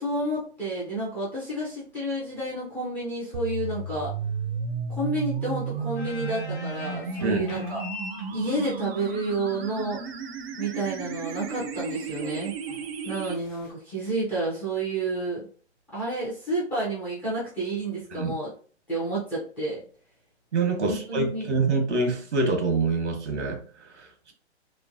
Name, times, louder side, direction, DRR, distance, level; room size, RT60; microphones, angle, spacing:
voice 1, 0.0-4.1 4.9-7.8 8.3-10.0 10.6-12.5 13.0-15.5 15.9-18.5 18.9-19.8 20.8-21.5, right 2 dB, 5° left, -8 dB, 0.4 m, -30 dB
sound 1, 3.3-13.3, right 5 dB, 60° right, 0.6 m, -33 dB
sound 2, 5.4-13.7, left 3 dB, 40° left, 0.8 m, -45 dB
voice 2, 20.5-24.3, right 3 dB, 85° right, 4 dB, 1.1 m, -26 dB
3.0 x 2.1 x 2.5 m, 0.42 s
hypercardioid pair, 145°, 34 cm